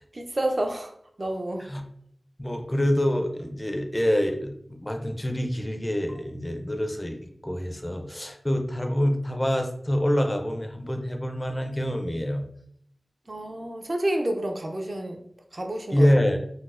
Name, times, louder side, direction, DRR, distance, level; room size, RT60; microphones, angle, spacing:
voice 1, 0.1-0.9 1.2-1.7 13.3-15.3 15.5-16.1, right 1 dB, 45° right, 4 dB, 0.5 m, -29 dB
voice 2, 2.4-7.2 7.4-12.5 15.9-16.4, equal, 20° left, 5 dB, 0.4 m, -26 dB
3.9 x 2.0 x 2.4 m, 0.67 s
wide cardioid pair, 75°, 0 cm